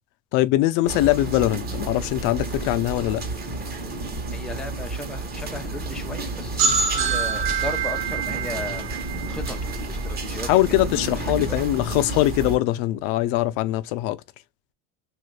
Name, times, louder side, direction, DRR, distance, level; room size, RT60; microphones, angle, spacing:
voice 1, 0.3-3.2 10.5-14.2, left 16 dB, 70° left, 0.5 m, -22 dB
sound 1, 0.9-12.6, right 2 dB, 30° right, 0.9 m, -31 dB
voice 2, 4.3-8.8 9.3-10.5 10.9-11.6, left 2 dB, ahead, 0.4 m, -36 dB
sound 2, 6.6-10.2, right 5 dB, 85° right, 0.8 m, -26 dB
3.1 x 2.5 x 3.1 m
cardioid pair, 135°, 32 cm